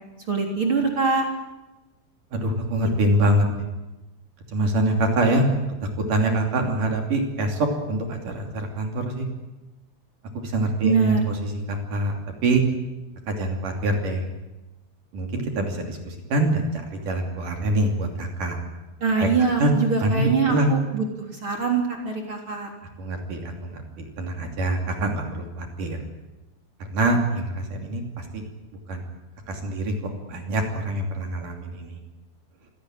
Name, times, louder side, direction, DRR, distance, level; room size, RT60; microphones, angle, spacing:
voice 1, 0.3-1.3 10.8-11.2 19.0-21.0 21.4-22.7, right 4 dB, 30° right, 2 dB, 3.4 m, -23 dB
voice 2, 2.3-3.7 4.5-5.5 6.0-9.3 10.3-12.1 12.4-12.6 13.3-14.3 15.1-18.6 19.2-19.3 19.6-19.7 20.0-20.8 23.0-26.0 26.9-28.4 28.9-29.0 29.5-29.9 30.3-32.0, right 1 dB, 45° right, 3 dB, 3.9 m, -25 dB
26.0 x 17.5 x 9.1 m, 1.1 s
omnidirectional pair, 5.8 m